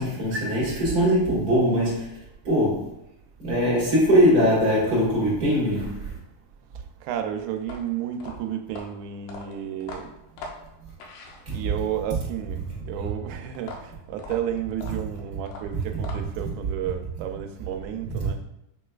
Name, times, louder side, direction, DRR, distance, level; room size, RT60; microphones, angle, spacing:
voice 1, 0.0-2.1 2.4-2.9 3.4-6.1 11.5-11.6 18.2-18.3, equal, 40° right, -6 dB, 1.5 m, -21 dB
voice 2, 7.0-10.1 11.5-18.4, right 9 dB, 85° right, 6 dB, 2.0 m, -32 dB
sound 1, 7.6-11.9 13.5-16.5, left 3 dB, 85° left, 2.1 m, -41 dB
6.5 x 3.2 x 2.3 m, 0.84 s
omnidirectional pair, 3.5 m